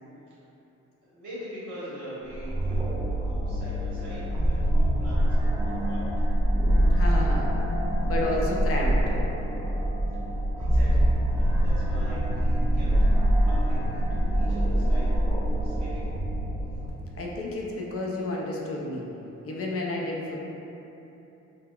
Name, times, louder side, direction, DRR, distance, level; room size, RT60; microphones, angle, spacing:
voice 1, 1.0-6.0 10.1-12.9 13.2-15.1 15.4-16.1, equal, 80° right, -11 dB, 1.3 m, -43 dB
sound 1, 2.3-16.9, right 1 dB, 10° right, 0.3 m, -24 dB
voice 2, 6.9-7.5 8.0-9.0 17.1-19.1 19.4-20.4, left 2 dB, 50° left, -2 dB, 0.5 m, -31 dB
3.6 x 2.1 x 2.3 m, 3.0 s
cardioid pair, 90°, 30 cm